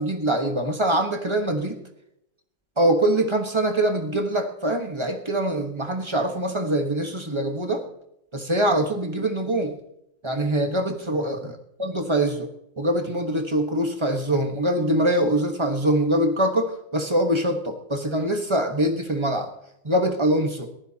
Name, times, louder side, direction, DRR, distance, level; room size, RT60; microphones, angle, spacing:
voice 1, 0.0-1.8 2.8-7.8 8.3-9.8 10.2-12.5 12.8-19.5 19.8-20.7, right 1 dB, 20° right, 4 dB, 1.2 m, -23 dB
22.0 x 15.0 x 2.9 m, 0.81 s
omnidirectional pair, 1.9 m